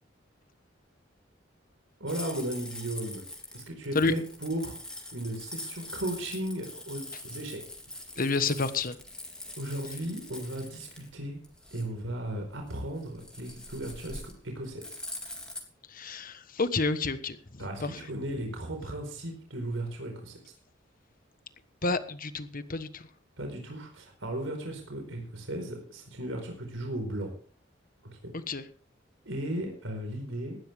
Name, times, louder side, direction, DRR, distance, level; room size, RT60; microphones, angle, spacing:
voice 1, 2.0-3.2 3.5-4.7 5.1-7.6 7.9-8.0 9.6-11.4 11.7-15.0 17.6-20.4 23.4-27.3 28.0-28.2 29.2-30.6, right 1 dB, 80° right, 3 dB, 4.7 m, -36 dB
sound 1, 2.1-15.6, left 1 dB, 5° left, 3.4 m, -43 dB
voice 2, 8.2-9.0 15.9-18.0 21.8-23.1 28.3-28.6, left 3 dB, 45° left, 12 dB, 1.3 m, -30 dB
18.0 x 12.5 x 3.6 m, 0.43 s
head